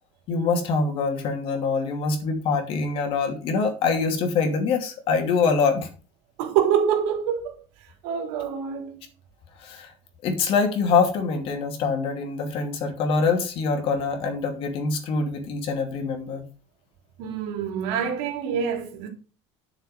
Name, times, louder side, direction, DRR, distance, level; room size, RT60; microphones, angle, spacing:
voice 1, 0.3-5.9 9.6-9.9 10.2-16.4, left 4 dB, 45° left, 2.7 m, -24 dB
voice 2, 6.4-7.6 8.0-9.0 17.2-19.1, right 8 dB, 75° right, 3.5 m, -26 dB
10.5 x 6.8 x 5.4 m
cardioid pair, 175°, 13 cm